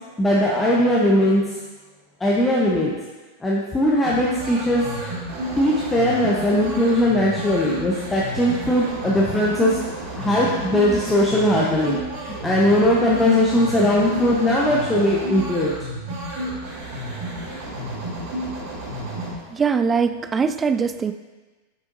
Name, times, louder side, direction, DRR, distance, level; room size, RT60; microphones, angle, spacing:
voice 1, 0.2-1.4 2.2-2.9 3.4-5.0 5.5-9.8 10.2-15.7, left 1 dB, 10° left, -5 dB, 0.8 m, -19 dB
sound 1, 4.0-19.3, right 1 dB, 45° right, 1.7 m, -31 dB
voice 2, 19.5-21.1, right 5 dB, 20° right, 10 dB, 0.3 m, -21 dB
7.2 x 6.2 x 2.6 m, 1.3 s
figure-of-eight pair, 90°, 0 cm